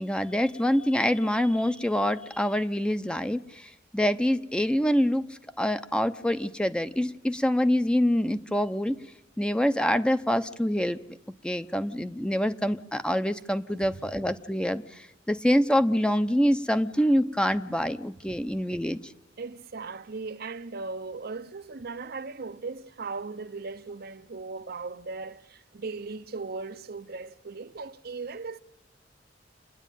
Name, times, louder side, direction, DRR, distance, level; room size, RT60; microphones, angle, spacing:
voice 1, 0.0-3.4 3.9-5.2 5.6-9.0 9.4-11.0 11.4-14.8 15.3-19.0, equal, 5° left, 0.7 m, -25 dB
voice 2, 19.4-28.6, right 4 dB, 55° right, 0.7 m, -38 dB
28.5 x 10.5 x 9.2 m
head